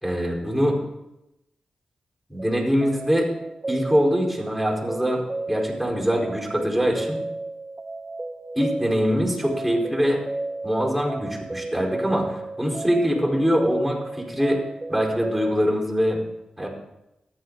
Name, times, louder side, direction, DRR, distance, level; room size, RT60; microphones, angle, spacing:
voice 1, 0.0-0.8 2.3-3.3 3.7-7.2 8.5-10.2 10.6-14.6 14.9-16.2 16.6-16.7, equal, 5° left, -2 dB, 4.5 m, -23 dB
sound 1, 2.4-15.6, right 2 dB, 25° right, 0.6 m, -33 dB
14.0 x 10.5 x 4.0 m, 0.88 s
cardioid pair, 85°, 2 cm